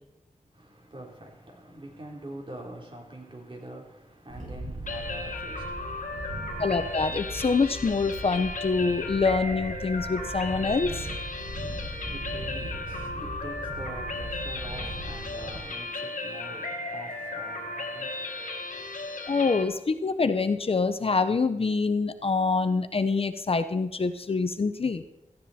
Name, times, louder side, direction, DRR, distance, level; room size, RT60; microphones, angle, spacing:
voice 1, 0.5-6.7 11.6-19.1, right 1 dB, 40° right, 3.6 m, -45 dB
Wind, 4.3-15.6, right 1 dB, 80° right, 7.4 m, -39 dB
sound 1, 4.9-19.6, left 2 dB, 80° left, 1.5 m, -35 dB
voice 2, 6.6-11.1 19.3-25.0, left 4 dB, 45° left, 0.8 m, -25 dB
16.5 x 14.5 x 4.3 m
wide cardioid pair, 110°, 13 cm